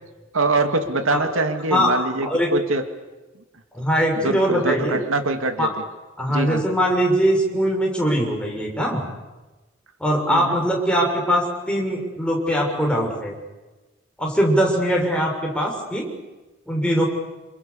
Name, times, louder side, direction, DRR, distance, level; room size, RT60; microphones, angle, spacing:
voice 1, 0.3-2.8 4.2-5.7 6.3-6.6 10.3-10.6, right 2 dB, 85° right, 7 dB, 2.5 m, -23 dB
voice 2, 1.7-2.5 3.7-5.0 5.6-5.7 6.2-9.0 10.0-13.3 14.2-16.1 16.7-17.0, equal, 5° left, -1 dB, 6.8 m, -21 dB
29.0 x 28.5 x 7.1 m, 1.1 s
head